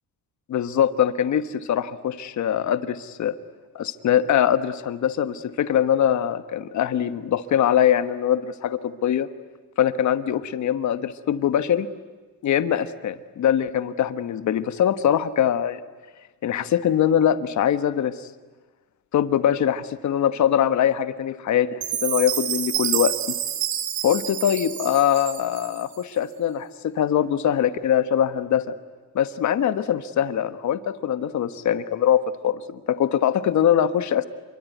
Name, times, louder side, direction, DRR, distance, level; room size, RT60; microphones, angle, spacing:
voice 1, 0.5-3.4 3.7-9.3 9.8-11.9 12.4-15.8 16.4-18.3 19.1-23.1 24.0-28.6 29.1-34.3, left 9 dB, 55° left, 12 dB, 1.2 m, -22 dB
Chime, 21.8-26.0, right 11 dB, 85° right, 2.4 m, -28 dB
27.0 x 23.5 x 9.3 m, 1.3 s
cardioid pair, 160°, 34 cm